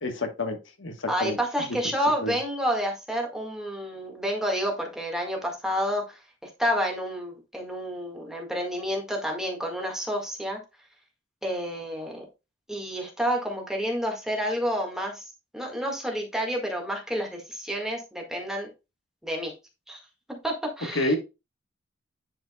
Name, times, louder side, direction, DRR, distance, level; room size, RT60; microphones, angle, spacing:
voice 1, 0.0-1.4 2.2-2.4 20.9-21.2, left 2 dB, 75° left, 5 dB, 1.3 m, -28 dB
voice 2, 1.1-10.6 11.4-12.3 12.7-18.7 19.2-19.5 19.9-20.0 20.3-21.2, equal, 5° right, 0 dB, 1.7 m, -29 dB
10.5 x 5.0 x 2.3 m, 0.26 s
head